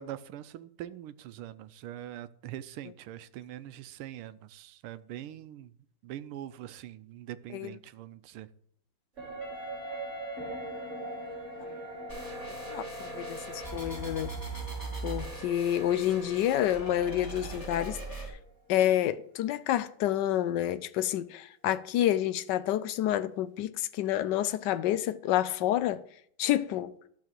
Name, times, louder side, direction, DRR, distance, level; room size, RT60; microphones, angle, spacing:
voice 1, 0.0-5.7 6.0-8.5, right 12 dB, 85° right, 1.5 m, -43 dB
sound 1, 9.2-18.7 19.0-19.1, right 2 dB, 35° right, 2.5 m, -43 dB
Wind instrument woodwind instrument, 9.4-14.4, left 9 dB, 55° left, 1.5 m, -48 dB
sound 2, 12.1-18.3, right 3 dB, 10° left, 3.4 m, -40 dB
voice 2, 12.7-14.3 15.0-18.4 18.7-26.0 26.4-26.9, left 12 dB, 75° left, 1.0 m, -29 dB
12.0 x 5.0 x 7.5 m
omnidirectional pair, 2.3 m